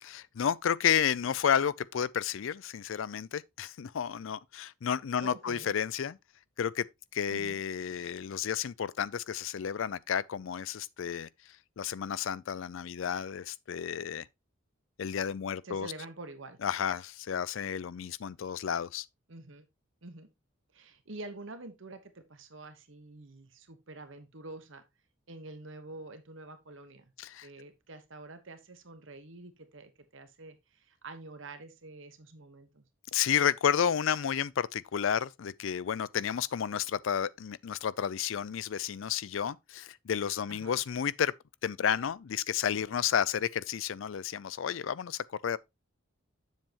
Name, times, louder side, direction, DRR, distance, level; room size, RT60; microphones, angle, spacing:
voice 1, 0.0-6.2 6.6-6.9 7.1-11.3 11.8-14.3 15.0-15.9 16.6-19.1 27.2-27.5 33.1-41.3 41.6-45.6, left 8 dB, 70° left, 0.4 m, -31 dB
voice 2, 5.2-5.7 7.3-7.6 15.6-16.6 19.3-19.7 20.0-20.3 20.7-24.8 25.3-27.0 27.4-32.8 40.5-40.8, right 2 dB, 65° right, 1.2 m, -47 dB
7.6 x 7.2 x 2.9 m
head